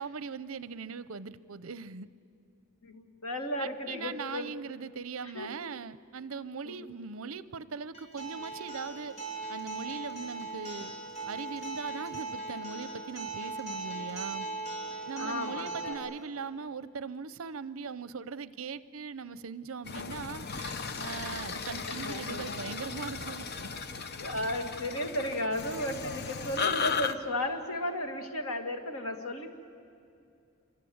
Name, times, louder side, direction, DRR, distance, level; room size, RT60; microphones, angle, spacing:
voice 1, 0.0-2.1 3.6-9.2 9.5-10.9 11.3-14.5 15.1-23.5, right 5 dB, 70° right, 16 dB, 0.7 m, -40 dB
voice 2, 2.8-4.5 5.3-5.5 6.7-6.8 15.2-16.0 21.9-22.4 24.2-29.5, left 1 dB, 85° left, 5 dB, 2.3 m, -34 dB
Acoustic guitar, 7.9-15.9, right 3 dB, 30° left, 5.4 m, -39 dB
sound 1, 19.8-27.1, left 5 dB, 50° left, 0.9 m, -36 dB
27.5 x 24.5 x 8.0 m, 2.5 s
head